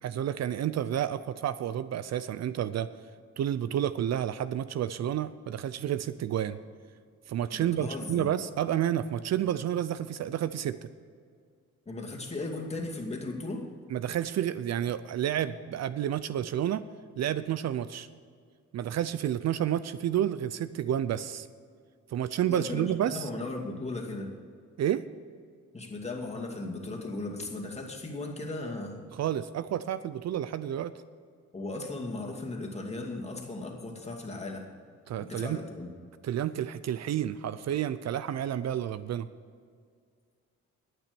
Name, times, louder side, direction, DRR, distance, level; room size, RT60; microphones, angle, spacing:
voice 1, 0.0-2.9 3.4-6.6 7.3-10.8 13.9-16.8 17.2-18.1 18.7-21.5 22.1-23.3 24.8-25.0 29.1-30.9 35.1-35.6 36.2-39.3, right 10 dB, 60° right, 14 dB, 0.5 m, -30 dB
voice 2, 7.5-8.3 11.9-13.7 22.5-24.3 25.7-29.0 31.5-34.7 35.2-35.9, left 2 dB, 20° left, 0 dB, 2.4 m, -37 dB
11.5 x 9.1 x 6.9 m, 2.1 s
cardioid pair, 100°, 31 cm